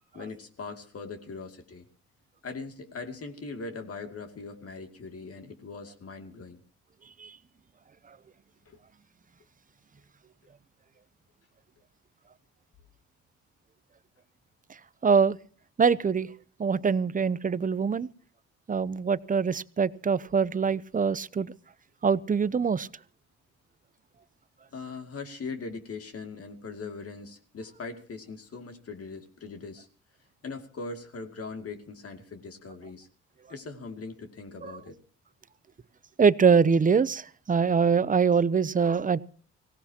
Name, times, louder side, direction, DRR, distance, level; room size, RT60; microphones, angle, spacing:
voice 1, 0.1-1.8 2.4-6.6 8.7-8.8 24.7-29.9 30.4-33.1 33.5-35.0, left 4 dB, 50° left, 2.6 m, -40 dB
voice 2, 15.0-15.4 15.8-16.3 16.6-18.1 18.7-21.5 22.0-22.9 34.6-34.7 36.2-39.2, right 5 dB, 25° right, 0.7 m, -24 dB
24.0 x 17.5 x 2.9 m
cardioid pair, 90°, 30 cm